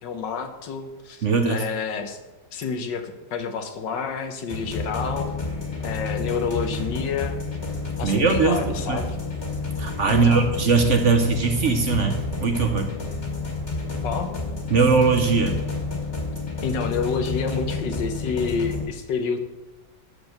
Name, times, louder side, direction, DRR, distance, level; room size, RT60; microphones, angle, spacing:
voice 1, 0.0-2.2 2.5-5.3 5.8-7.4 8.0-9.2 10.0-10.5 14.0-14.3 16.6-19.4, left 5 dB, 80° left, 7 dB, 1.7 m, -28 dB
voice 2, 1.2-1.6 8.0-8.6 8.9-9.0 9.8-12.9 14.7-15.6, right 4 dB, 50° right, 5 dB, 1.0 m, -20 dB
sound 1, 4.5-18.8, left 3 dB, 40° left, 2.0 m, -30 dB
11.5 x 4.6 x 6.6 m, 1.1 s
omnidirectional pair, 1.9 m